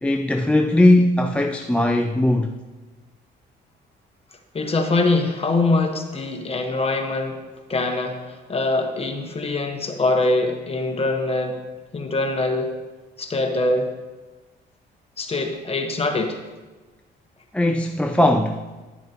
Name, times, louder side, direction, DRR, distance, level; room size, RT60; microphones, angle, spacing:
voice 1, 0.0-2.5 17.5-18.6, left 1 dB, 5° left, 4 dB, 0.4 m, -19 dB
voice 2, 4.5-7.4 7.7-11.6 11.9-12.7 13.2-13.9 15.2-16.4, left 2 dB, 30° left, 3 dB, 1.2 m, -23 dB
10.5 x 7.0 x 2.9 m, 1.2 s
cardioid pair, 90°, 20 cm